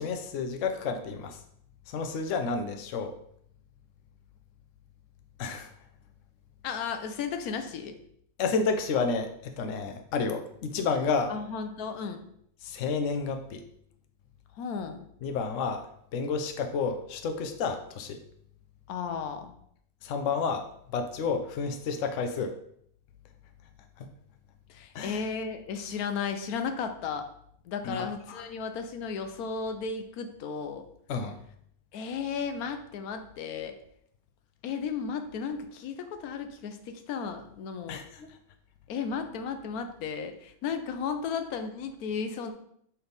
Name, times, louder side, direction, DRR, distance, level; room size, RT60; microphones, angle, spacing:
voice 1, 0.0-1.4 1.9-3.1 5.4-5.7 8.4-11.3 12.6-13.6 15.2-15.9 16.1-18.2 20.0-22.5 24.0-24.1 24.9-25.2 27.8-28.4 31.1-31.4 37.9-38.3, left 5 dB, 65° left, 6 dB, 1.0 m, -30 dB
voice 2, 6.6-8.0 11.3-12.2 14.6-15.1 18.9-19.5 24.7-27.2 27.7-30.8 31.9-33.8 34.6-38.0 38.9-42.5, left 6 dB, 85° left, 7 dB, 1.1 m, -34 dB
6.9 x 3.5 x 3.9 m, 0.69 s
omnidirectional pair, 1.5 m